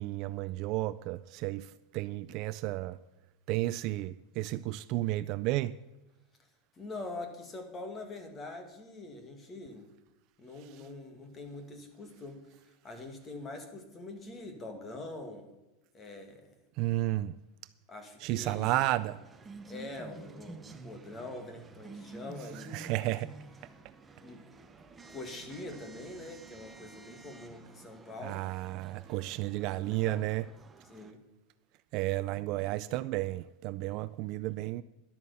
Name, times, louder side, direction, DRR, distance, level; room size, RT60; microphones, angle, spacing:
voice 1, 0.0-3.0 3.5-5.8 16.8-17.3 18.2-19.2 22.7-23.3 28.2-30.5 31.9-34.8, right 17 dB, 40° right, 0.3 m, -32 dB
voice 2, 6.8-9.9 10.4-15.5 15.9-16.5 17.9-18.7 19.7-22.9 24.2-24.6 25.1-28.5 29.6-30.2 30.9-31.2, left 2 dB, 15° left, 1.8 m, -44 dB
sound 1, 18.4-31.1, right 3 dB, 10° right, 0.7 m, -50 dB
12.0 x 8.5 x 6.9 m
supercardioid pair, 165°, 0 cm